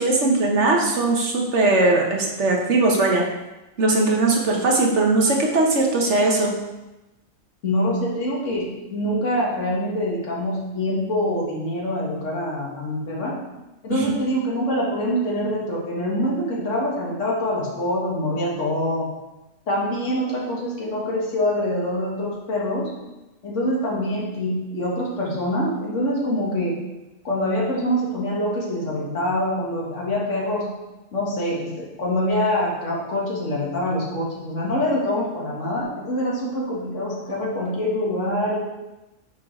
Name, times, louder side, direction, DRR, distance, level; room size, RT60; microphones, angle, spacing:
voice 1, 0.0-3.2 3.8-6.5 13.9-14.2, right 2 dB, 70° right, 0 dB, 1.4 m, -19 dB
voice 2, 7.6-13.4 13.8-19.1 19.7-22.9 23.4-26.8 27.2-30.7 31.1-38.6, left 1 dB, 75° left, -5 dB, 1.9 m, -25 dB
6.7 x 4.7 x 4.9 m, 1.0 s
omnidirectional pair, 1.3 m